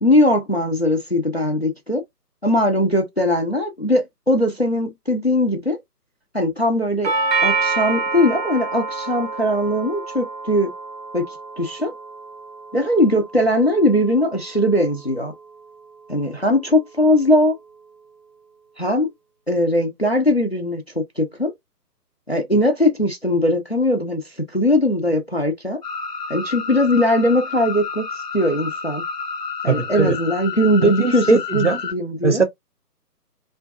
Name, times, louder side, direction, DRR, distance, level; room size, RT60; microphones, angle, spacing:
voice 1, 0.0-2.0 2.4-5.8 6.3-7.1 7.4-10.7 11.1-11.3 11.6-11.9 12.7-15.3 16.1-17.6 18.8-19.1 19.5-21.5 22.3-25.8 26.3-28.0 28.3-29.0 29.6-32.4, left 1 dB, 45° left, 0.4 m, -20 dB
Doorbell, 7.0-15.1, right 3 dB, 90° right, 0.7 m, -28 dB
sound 1, 25.8-31.9, left 5 dB, 75° left, 0.8 m, -30 dB
voice 2, 29.7-30.2 30.8-31.8 32.2-32.4, right 4 dB, 50° right, 0.5 m, -20 dB
2.5 x 2.2 x 2.3 m
figure-of-eight pair, 150°, 49 cm